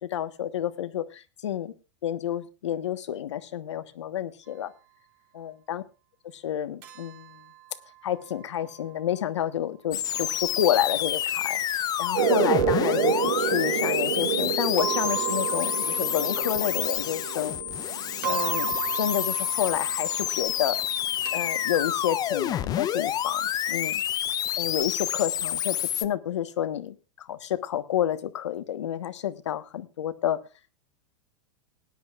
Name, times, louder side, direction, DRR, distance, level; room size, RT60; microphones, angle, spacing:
voice 1, 0.0-1.7 2.0-4.7 5.3-5.8 6.3-7.4 8.0-11.6 12.0-17.6 18.2-20.8 21.3-24.0 24.6-30.4, left 10 dB, 85° left, 11 dB, 1.3 m, -29 dB
sound 1, 6.8-8.9 10.1-11.1 12.4-13.6 14.8-17.9 18.2-22.6, right 14 dB, 50° right, 3.5 m, -37 dB
sound 2, 9.9-26.0, left 11 dB, 25° left, 0.7 m, -28 dB
sound 3, 12.1-19.3, right 9 dB, 85° right, 2.2 m, -29 dB
19.5 x 10.5 x 2.4 m, 0.29 s
hypercardioid pair, 130°, 15 cm